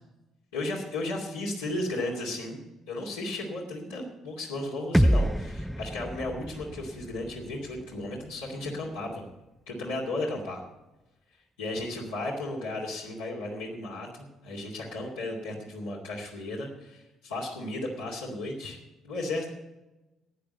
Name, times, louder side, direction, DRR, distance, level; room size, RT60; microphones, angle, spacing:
voice 1, 0.5-2.6 2.9-9.3 9.7-10.6 11.6-18.8 19.0-19.5, left 2 dB, 90° left, -5 dB, 2.6 m, -34 dB
sound 1, 4.9-8.9, equal, ahead, 0.3 m, -28 dB
11.0 x 9.2 x 7.9 m, 1.0 s
hypercardioid pair, 55°, 0 cm